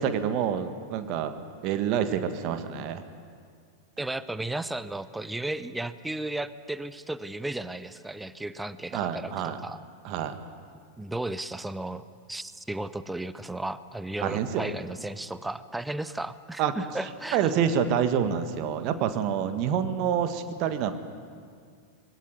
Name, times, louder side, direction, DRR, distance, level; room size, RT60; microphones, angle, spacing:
voice 1, 0.0-1.3 1.6-3.0 8.9-9.6 10.0-10.3 14.2-14.7 16.6-16.7 17.3-20.9, right 8 dB, 40° right, 9 dB, 1.7 m, -27 dB
voice 2, 4.0-9.8 11.0-17.5, right 2 dB, 5° right, 15 dB, 0.7 m, -34 dB
22.0 x 16.5 x 9.4 m, 2.2 s
figure-of-eight pair, 90°, 0 cm